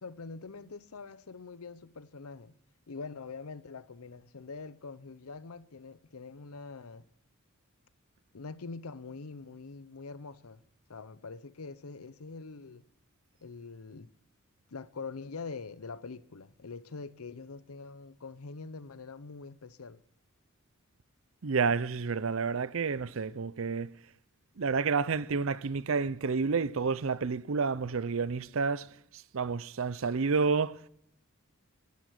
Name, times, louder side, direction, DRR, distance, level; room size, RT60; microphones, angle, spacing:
voice 1, 0.0-2.6 2.9-7.1 8.3-10.6 10.9-12.9 13.4-14.1 14.7-20.0, left 4 dB, 90° left, 0.8 m, -44 dB
voice 2, 21.4-24.0 24.6-30.9, right 5 dB, 65° right, 0.6 m, -30 dB
13.5 x 11.0 x 8.4 m
head